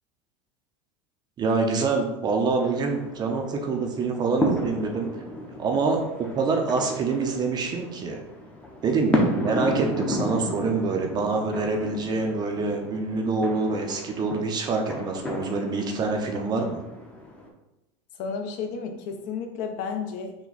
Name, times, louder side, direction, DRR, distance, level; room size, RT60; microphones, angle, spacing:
voice 1, 1.4-5.1 5.6-8.2 8.8-16.8, right 4 dB, 25° right, 3 dB, 0.6 m, -26 dB
sound 1, 2.6-17.5, left 1 dB, 5° left, 0.7 m, -33 dB
voice 2, 18.2-20.4, left 5 dB, 50° left, 4 dB, 0.7 m, -32 dB
5.9 x 2.2 x 4.0 m, 0.94 s
supercardioid pair, 150°, 16 cm